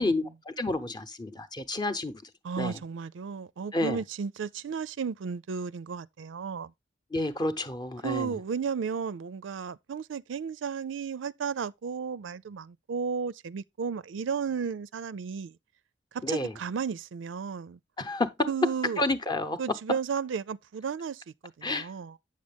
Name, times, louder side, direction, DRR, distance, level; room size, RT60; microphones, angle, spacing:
voice 1, 0.0-2.2 2.6-2.8 3.7-4.0 7.1-8.3 16.2-16.5 18.0-18.5 19.0-19.6 21.6-21.9, left 2 dB, 25° left, 0.8 m, -30 dB
voice 2, 2.4-6.7 8.0-15.6 16.1-17.8 18.5-19.0 19.6-22.2, right 6 dB, 90° right, 0.4 m, -34 dB
8.5 x 6.4 x 3.4 m
head